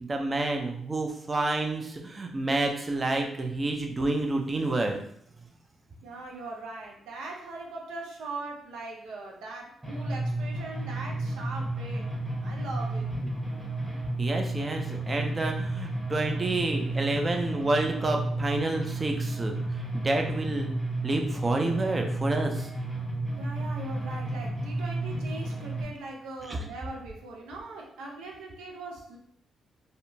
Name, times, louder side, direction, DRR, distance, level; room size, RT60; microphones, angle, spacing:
voice 1, 0.0-5.0 14.2-20.7 21.0-22.7 26.4-26.7, right 2 dB, 35° right, 3 dB, 0.5 m, -29 dB
voice 2, 6.0-13.1 23.4-29.2, right 3 dB, 90° right, 0 dB, 0.4 m, -40 dB
sound 1, 9.8-25.8, right 1 dB, 5° right, 1.0 m, -32 dB
2.7 x 2.1 x 2.6 m, 0.67 s
cardioid pair, 70°, 0 cm